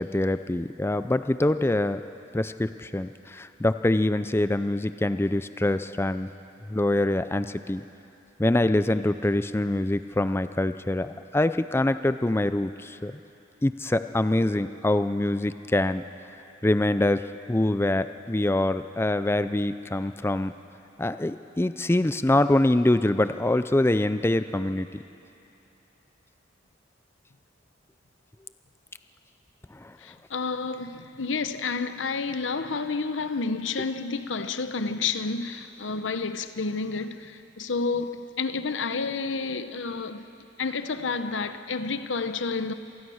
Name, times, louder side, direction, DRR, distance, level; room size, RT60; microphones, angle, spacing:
voice 1, 0.0-2.0 2.3-6.3 6.7-7.8 8.4-13.2 13.6-16.0 16.6-20.5 21.0-24.9 29.8-29.9, left 1 dB, 15° left, 0.4 m, -24 dB
voice 2, 30.0-40.3 40.6-42.7, left 4 dB, 85° left, 0.9 m, -30 dB
26.0 x 19.0 x 6.4 m
head